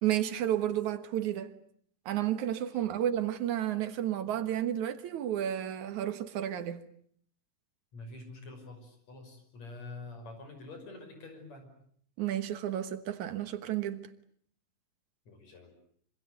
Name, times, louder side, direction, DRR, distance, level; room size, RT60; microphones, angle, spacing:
voice 1, 0.0-1.5 2.1-6.8 12.2-14.1, right 11 dB, 75° right, 2.7 m, -32 dB
voice 2, 7.9-11.7 15.3-15.7, left 2 dB, 60° left, 7.0 m, -47 dB
26.5 x 25.5 x 8.1 m
omnidirectional pair, 3.5 m